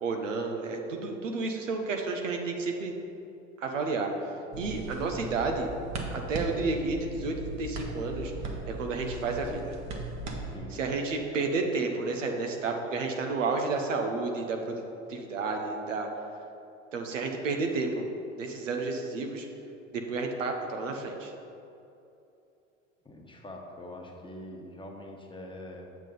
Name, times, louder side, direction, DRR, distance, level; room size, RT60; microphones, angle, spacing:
voice 1, 0.0-2.9 3.6-5.7 6.1-8.3 8.7-9.7 10.7-14.8 15.1-16.1 16.9-18.1 18.4-19.5 19.9-21.3, right 3 dB, 90° right, 3 dB, 0.9 m, -31 dB
sound 1, 4.5-10.6, right 2 dB, 45° right, 1.3 m, -38 dB
voice 2, 10.4-10.8 23.0-25.8, left 1 dB, 15° left, 0 dB, 1.3 m, -44 dB
7.4 x 7.3 x 3.9 m, 2.8 s
hypercardioid pair, 80°, 37 cm